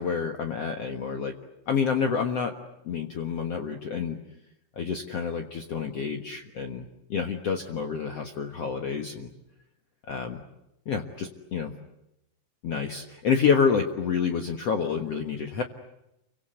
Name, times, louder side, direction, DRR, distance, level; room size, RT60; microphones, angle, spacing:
voice 1, 0.0-1.3 1.7-2.5 2.8-4.2 4.8-9.3 10.1-10.3 10.9-11.7 12.6-15.6, left 6 dB, 55° left, 4 dB, 2.2 m, -28 dB
30.0 x 24.5 x 8.0 m, 0.88 s
omnidirectional pair, 4.1 m